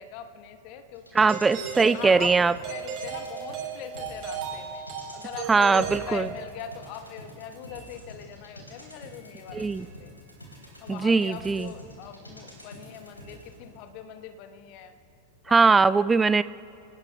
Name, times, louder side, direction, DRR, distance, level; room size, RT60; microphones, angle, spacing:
voice 1, 0.0-1.4 1.9-4.8 5.1-10.1 10.8-15.0 15.4-16.0 16.3-16.4, left 8 dB, 45° left, 8 dB, 1.2 m, -42 dB
sound 1, 0.9-13.8 14.1-14.2, equal, 85° left, 4.0 m, -47 dB
voice 2, 1.1-2.5 5.5-6.3 9.5-9.9 10.9-11.7 15.5-16.4, right 4 dB, 15° right, 17 dB, 0.3 m, -20 dB
Doorbell, 1.3-6.7, right 7 dB, 35° right, 4.3 m, -36 dB
27.0 x 18.5 x 2.3 m, 2.6 s
figure-of-eight pair, 90°, 0 cm